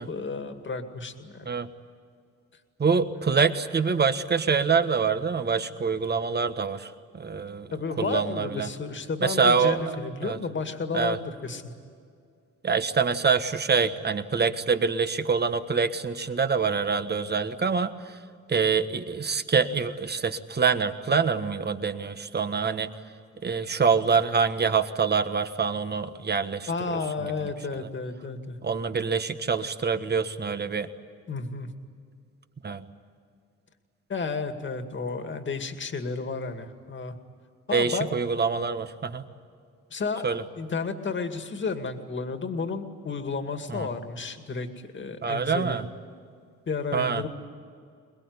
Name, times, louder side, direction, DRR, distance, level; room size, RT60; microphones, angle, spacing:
voice 1, 0.0-1.5 7.7-11.6 26.7-28.6 31.3-31.7 34.1-37.1 37.7-38.1 39.9-40.3 40.6-44.7 44.9-45.9 46.7-47.3, left 4 dB, 40° left, 7 dB, 2.2 m, -32 dB
voice 2, 2.8-6.9 7.1-7.7 8.0-8.7 9.2-9.8 10.2-10.4 10.9-11.2 12.6-17.9 18.5-22.9 23.4-26.7 28.6-30.9 32.6-32.8 37.7-39.2 40.2-40.4 43.7-43.9 45.2-45.8 46.9-47.2, right 5 dB, 35° right, 9 dB, 1.5 m, -25 dB
23.0 x 21.0 x 9.7 m, 2.3 s
cardioid pair, 90°, 30 cm